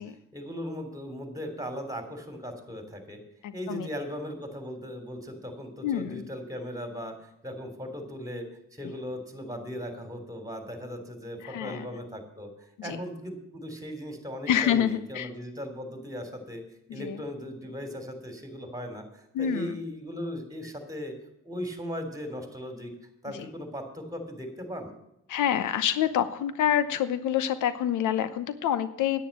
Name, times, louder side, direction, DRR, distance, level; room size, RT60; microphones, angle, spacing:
voice 1, 0.3-3.2 3.5-8.5 8.7-16.6 16.9-21.1 21.4-22.9 23.2-24.9, equal, 10° right, 6 dB, 3.3 m, -38 dB
voice 2, 3.4-3.9 5.8-6.3 8.8-8.9 11.4-11.9 12.8-13.0 14.5-15.3 16.9-17.2 19.3-19.8 23.3-23.5 25.3-29.3, left 10 dB, 80° left, 13 dB, 0.9 m, -27 dB
10.0 x 9.6 x 7.3 m, 0.83 s
cardioid pair, 90°, 30 cm